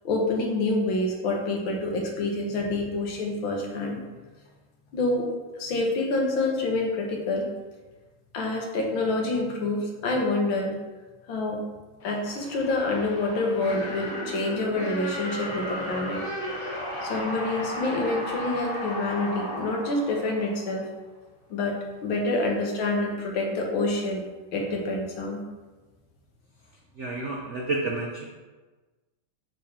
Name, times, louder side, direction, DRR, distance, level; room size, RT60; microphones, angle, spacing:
voice 1, 0.1-4.0 4.9-5.3 5.5-7.5 8.3-10.8 11.3-11.6 12.0-16.2 17.0-20.9 21.5-21.8 22.0-24.2 24.5-25.4, left 2 dB, 80° left, 0 dB, 1.8 m, -27 dB
sound 1, 12.0-20.9, left 1 dB, 60° left, 2.1 m, -35 dB
voice 2, 27.0-28.3, right 2 dB, 75° right, -1 dB, 0.6 m, -30 dB
6.6 x 6.3 x 2.9 m, 1.3 s
omnidirectional pair, 2.2 m